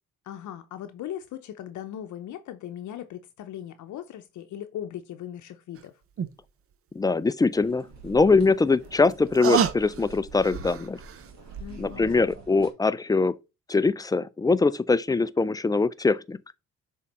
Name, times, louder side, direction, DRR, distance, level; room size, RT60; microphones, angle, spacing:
voice 1, 0.3-6.0 11.6-12.2, left 11 dB, 70° left, 0.7 m, -38 dB
sound 1, 5.8-5.9 6.2-6.3 8.2-11.3 11.7-11.8, right 7 dB, 50° right, 0.7 m, -30 dB
voice 2, 7.0-11.0 11.8-13.4 13.7-16.4, left 3 dB, 15° left, 0.4 m, -22 dB
sound 2, 7.6-12.7, right 4 dB, 65° right, 1.9 m, -45 dB
6.6 x 3.7 x 4.1 m
cardioid pair, 90°, 30 cm